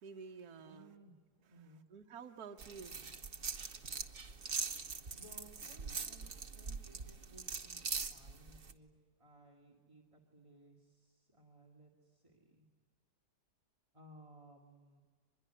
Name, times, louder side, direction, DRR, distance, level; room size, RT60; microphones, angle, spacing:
voice 1, 0.0-0.9 1.9-3.1 3.5-4.5, right 5 dB, 65° right, 4 dB, 1.6 m, -52 dB
voice 2, 0.6-1.2 1.5-1.8 5.1-6.3 6.5-7.8 8.1-8.9 9.2-12.7 13.9-15.0, right 1 dB, 20° right, 0 dB, 2.1 m, -60 dB
sound 1, 2.6-8.7, right 5 dB, 40° right, 1.1 m, -42 dB
25.0 x 22.0 x 9.9 m, 1.5 s
omnidirectional pair, 1.8 m